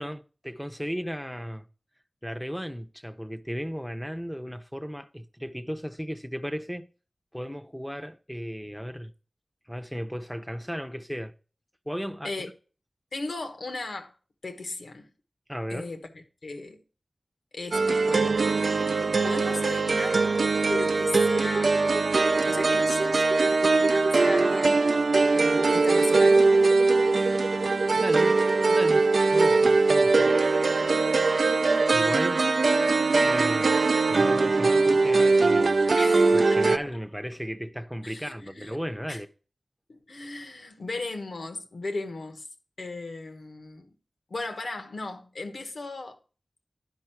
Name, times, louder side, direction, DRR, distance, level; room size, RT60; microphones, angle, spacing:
voice 1, 0.0-1.7 2.2-6.9 7.3-9.1 9.7-11.3 11.9-12.3 15.5-15.9 27.9-28.4 28.7-30.3 31.9-32.5 33.2-35.9 36.3-39.3, equal, ahead, 0.6 m, -35 dB
voice 2, 13.1-14.1 14.4-15.1 15.7-16.8 17.5-18.6 19.2-20.2 20.7-21.7 22.4-24.9 25.3-26.4 36.0-36.6 38.0-38.8 39.1-39.2 39.9-42.5 42.8-43.9 44.3-46.2, left 2 dB, 85° left, 1.2 m, -36 dB
sound 1, 17.7-36.8, right 3 dB, 80° right, 0.4 m, -21 dB
11.0 x 5.5 x 4.4 m
wide cardioid pair, 80°, 0 cm